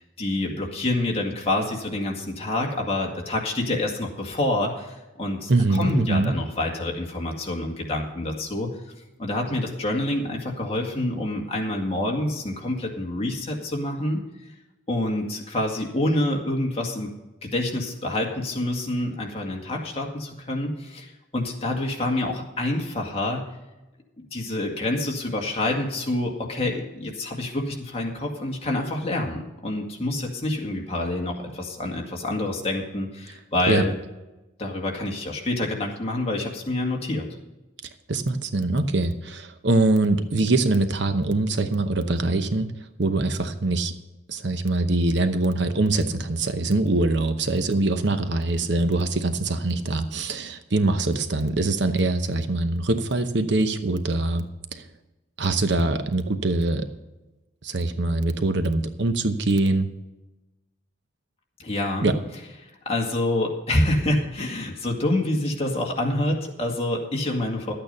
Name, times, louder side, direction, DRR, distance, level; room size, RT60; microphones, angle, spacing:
voice 1, 0.0-8.8 9.2-14.2 14.9-17.1 17.4-23.5 24.3-33.9 34.6-37.3 61.6-62.2 62.6-67.7, left 1 dB, 30° left, 0 dB, 2.0 m, -27 dB
voice 2, 5.5-6.3 33.7-33.8 38.1-42.7 43.0-43.9 44.3-54.4 54.7-54.8 55.4-56.9 57.6-59.9 62.0-62.2, right 2 dB, 60° right, 9 dB, 0.9 m, -23 dB
12.0 x 8.9 x 5.4 m, 1.0 s
head